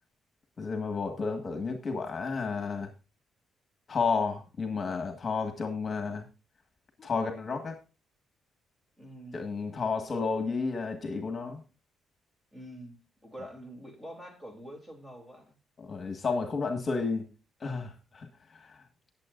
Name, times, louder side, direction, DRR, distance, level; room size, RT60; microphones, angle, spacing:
voice 1, 0.6-2.9 3.9-6.2 7.0-7.8 9.3-11.6 15.8-17.2 17.6-18.3 18.5-18.8, left 4 dB, 40° left, 5 dB, 1.6 m, -31 dB
voice 2, 9.0-9.5 12.5-15.5, equal, 10° right, 3 dB, 3.3 m, -46 dB
19.0 x 7.5 x 2.6 m, 0.32 s
cardioid pair, 90°, 0 cm